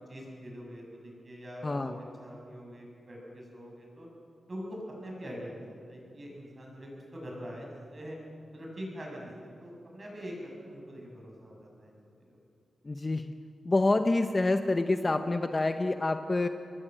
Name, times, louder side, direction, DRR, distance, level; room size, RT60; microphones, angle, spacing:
voice 1, 0.1-4.1 4.5-8.2 8.5-9.3 9.6-11.9 12.3-12.4, equal, 30° right, -1 dB, 7.3 m, -43 dB
voice 2, 1.6-1.9 12.8-13.3 13.6-16.5, left 2 dB, 25° left, 7 dB, 0.9 m, -27 dB
27.0 x 21.0 x 7.7 m, 2.5 s
wide cardioid pair, 145°, 0 cm